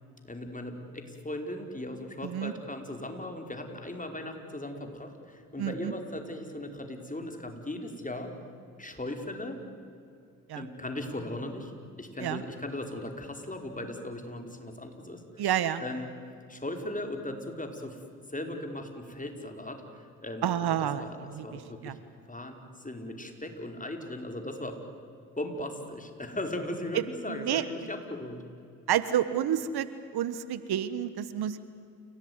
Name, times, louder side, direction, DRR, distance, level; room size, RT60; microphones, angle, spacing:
voice 1, 0.2-8.4 8.8-9.6 10.5-11.7 12.0-15.5 15.8-16.1 16.5-18.0 18.3-20.5 21.0-22.0 22.3-24.8 25.4-28.5, left 1 dB, 20° left, 4 dB, 5.1 m, -38 dB
voice 2, 2.2-2.5 5.6-5.9 10.5-10.6 12.2-12.4 15.4-15.8 20.4-22.0 27.3-27.6 28.9-29.9 30.1-31.6, right 10 dB, 70° right, 14 dB, 1.3 m, -29 dB
29.5 x 17.5 x 9.6 m, 2.5 s
hypercardioid pair, 45°, 40 cm